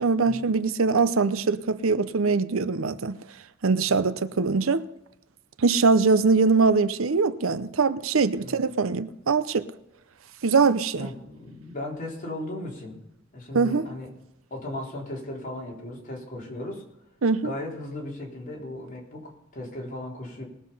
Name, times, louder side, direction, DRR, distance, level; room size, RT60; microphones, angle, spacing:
voice 1, 0.0-3.2 3.6-4.8 5.6-9.7 10.4-11.1 13.5-13.9 17.2-17.5, right 4 dB, 90° right, 0.7 m, -22 dB
voice 2, 11.0-13.0 13.3-14.1 14.5-16.8 17.4-20.4, left 1 dB, 40° left, 3.8 m, -36 dB
20.0 x 7.4 x 5.5 m
head